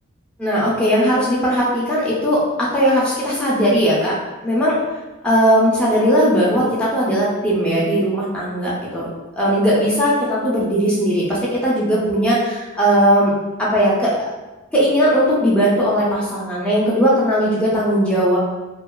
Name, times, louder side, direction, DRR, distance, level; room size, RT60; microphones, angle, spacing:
voice 1, 0.4-4.1 4.4-4.8 5.2-9.1 9.4-11.4 11.6-13.3 13.6-14.1 14.7-18.4, equal, 5° left, -7 dB, 0.4 m, -18 dB
2.9 x 2.2 x 2.2 m, 1.1 s
head